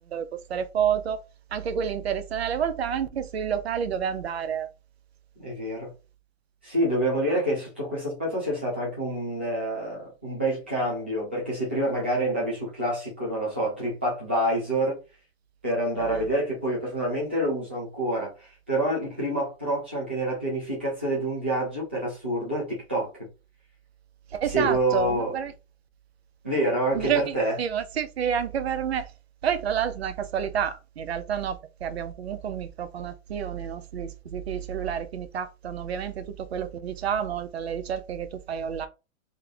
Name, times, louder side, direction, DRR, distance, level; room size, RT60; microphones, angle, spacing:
voice 1, 0.1-1.2 1.5-4.7 16.0-16.3 24.3-25.5 26.9-29.1 29.4-38.9, right 8 dB, 50° right, 0.7 m, -29 dB
voice 2, 5.4-5.9 6.6-15.0 15.6-23.3 24.5-25.3 26.4-27.6, right 1 dB, 10° right, 0.5 m, -27 dB
3.3 x 3.0 x 3.8 m
hypercardioid pair, 175°, 41 cm